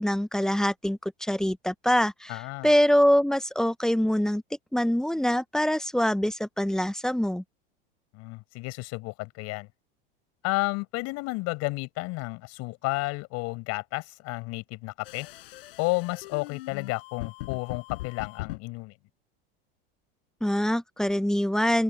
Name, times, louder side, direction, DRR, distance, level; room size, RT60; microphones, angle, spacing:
voice 1, 0.0-2.4 2.6-4.4 4.7-7.4 20.4-21.8, equal, ahead, 0.7 m, -24 dB
voice 2, 2.3-2.7 8.1-9.7 10.4-15.3 15.8-18.9, left 24 dB, 60° left, 5.6 m, -32 dB
sound 1, 15.0-18.6, left 18 dB, 75° left, 7.0 m, -40 dB
open air
hypercardioid pair, 95°, 29 cm